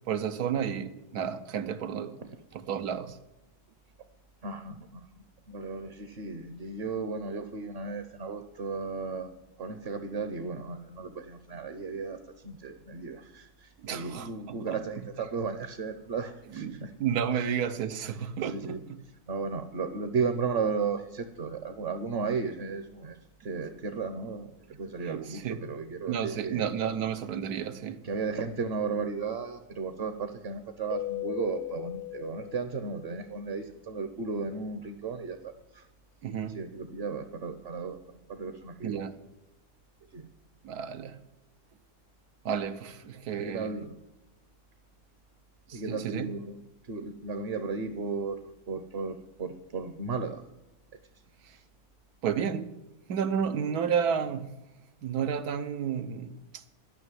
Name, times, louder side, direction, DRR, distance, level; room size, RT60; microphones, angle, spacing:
voice 1, 0.0-2.3 2.5-3.2 13.8-14.8 16.5-18.8 25.0-25.6 26.1-28.0 36.2-36.6 38.8-39.2 40.6-41.2 42.4-43.7 45.7-46.3 51.4-51.6 52.2-52.7 53.1-54.6 55.0-56.6, right 8 dB, 85° right, 1.3 m, -32 dB
voice 2, 4.4-9.3 9.6-16.9 17.3-17.5 18.1-18.9 19.3-26.7 28.0-35.9 36.5-39.1 40.1-40.3 43.4-44.0 45.7-46.6 46.9-50.4, right 5 dB, 50° right, 0.9 m, -35 dB
Keyboard (musical), 30.9-33.4, left 16 dB, 55° left, 0.6 m, -38 dB
12.0 x 6.3 x 9.3 m
omnidirectional pair, 1.6 m